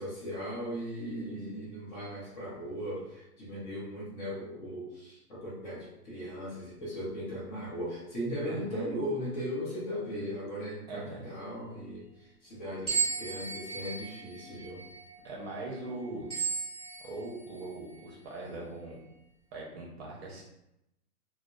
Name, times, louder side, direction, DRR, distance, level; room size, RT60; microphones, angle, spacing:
voice 1, 0.0-14.8, equal, 30° left, -6 dB, 0.6 m, -38 dB
voice 2, 8.4-8.9 10.9-11.2 15.2-16.3 17.0-19.0 19.5-20.4, right 2 dB, 45° right, -2 dB, 0.7 m, -41 dB
sound 1, 12.9-17.7, right 5 dB, ahead, 1.0 m, -36 dB
2.7 x 2.0 x 2.3 m, 0.86 s
hypercardioid pair, 145°, 47 cm